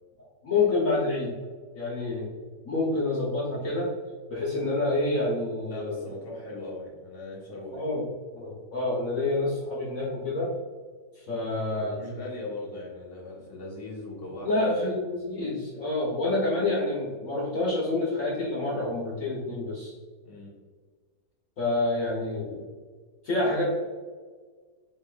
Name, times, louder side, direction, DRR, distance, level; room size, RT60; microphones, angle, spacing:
voice 1, 0.4-1.3 1.7-2.3 2.6-3.9 4.3-6.0 7.7-8.0 8.3-10.5 11.2-11.9 14.4-19.9 21.6-22.6 23.2-23.7, left 2 dB, 55° left, -5 dB, 1.3 m, -28 dB
voice 2, 5.7-7.9 11.3-15.0 20.2-20.5, left 2 dB, 15° left, -7 dB, 1.5 m, -39 dB
5.6 x 3.7 x 2.4 m, 1.5 s
omnidirectional pair, 1.8 m